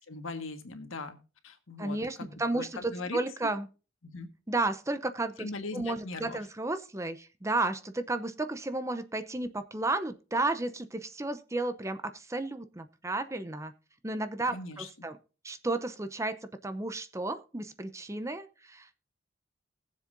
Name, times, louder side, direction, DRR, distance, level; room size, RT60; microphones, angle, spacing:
voice 1, 0.1-1.2 1.4-3.5 4.0-4.3 5.4-6.4 14.5-15.1, left 3 dB, 85° left, 7 dB, 1.6 m, -40 dB
voice 2, 1.8-3.7 4.5-13.7 14.0-15.2 15.4-16.4 16.6-18.9, right 2 dB, 15° right, 11 dB, 0.6 m, -33 dB
20.0 x 7.4 x 2.6 m, 0.34 s
head